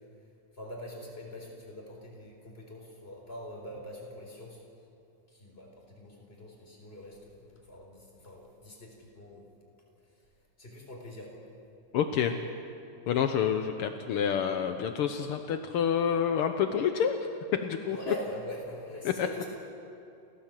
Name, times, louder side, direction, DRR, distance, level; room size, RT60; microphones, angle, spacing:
voice 1, 0.6-4.6 5.3-9.5 10.6-11.4 17.9-19.5, equal, 20° left, -1 dB, 4.2 m, -43 dB
voice 2, 11.9-12.3 13.1-17.2 17.6-18.1 19.0-19.3, left 8 dB, 80° left, 7 dB, 1.3 m, -28 dB
29.5 x 14.5 x 7.6 m, 2.7 s
omnidirectional pair, 3.6 m